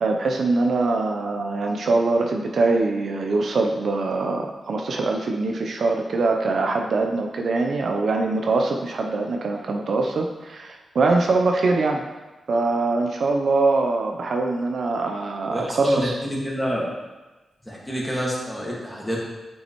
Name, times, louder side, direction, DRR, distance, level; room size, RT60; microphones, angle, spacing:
voice 1, 0.0-12.0 12.5-16.1, right 3 dB, 65° right, 2 dB, 0.6 m, -23 dB
voice 2, 15.5-16.8 17.6-19.2, equal, 5° left, -4 dB, 1.8 m, -27 dB
8.8 x 5.4 x 3.1 m, 1.2 s
wide cardioid pair, 105°, 0 cm